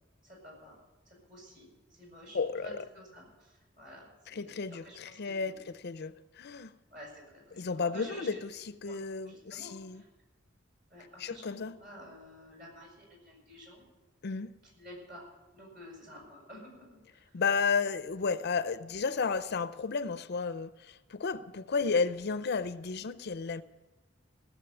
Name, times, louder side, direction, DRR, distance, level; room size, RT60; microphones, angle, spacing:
voice 1, 0.2-0.7 1.1-5.7 6.9-8.4 8.8-9.0 9.2-10.1 10.9-11.4 11.8-13.8 14.8-15.3 15.5-17.3, equal, 45° right, 7.0 m, -51 dB
voice 2, 2.3-2.9 4.3-6.7 7.5-10.0 11.2-11.8 14.2-14.5 17.3-23.6, left 5 dB, 55° left, 0.5 m, -33 dB
17.0 x 7.4 x 9.2 m
head